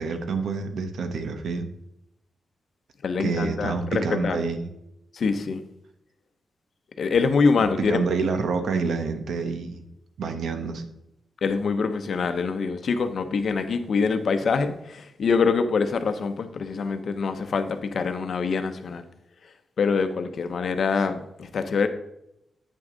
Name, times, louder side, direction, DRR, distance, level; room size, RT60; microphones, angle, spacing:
voice 1, 0.0-1.7 3.2-4.6 7.8-9.8 10.2-10.9, right 4 dB, 80° right, 7 dB, 1.0 m, -27 dB
voice 2, 3.0-4.4 5.1-5.6 7.0-8.0 11.4-19.1 19.8-21.9, left 5 dB, 55° left, 8 dB, 0.7 m, -25 dB
8.6 x 6.1 x 3.9 m, 0.83 s
wide cardioid pair, 155°, 0 cm